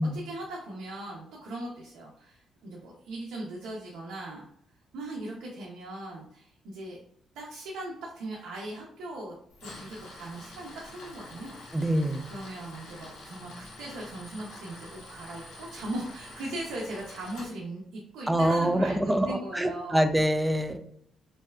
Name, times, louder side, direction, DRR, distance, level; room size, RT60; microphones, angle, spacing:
voice 1, 0.1-4.5 4.9-7.0 7.3-9.4 9.6-11.5 12.3-20.1, right 1 dB, 90° right, -3 dB, 0.6 m, -39 dB
Tools, 9.5-17.5, left 1 dB, 85° left, 1.0 m, -46 dB
voice 2, 11.7-12.3 18.3-20.8, right 1 dB, 10° right, 7 dB, 0.4 m, -25 dB
3.2 x 2.7 x 2.3 m, 0.68 s
cardioid pair, 90°, 0 cm